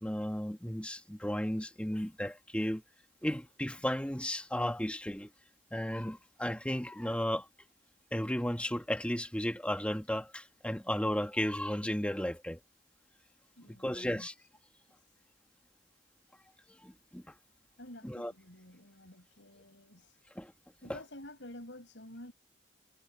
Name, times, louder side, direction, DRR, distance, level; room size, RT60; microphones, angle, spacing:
voice 1, 0.0-2.8 3.2-5.3 5.7-7.5 8.1-12.6 13.7-14.3 16.8-17.2 18.0-18.3 20.4-20.5 20.8-21.0, equal, 5° left, 1.9 m, -34 dB
voice 2, 13.6-14.3 17.8-20.2 20.8-22.3, left 1 dB, 80° left, 6.6 m, -50 dB
head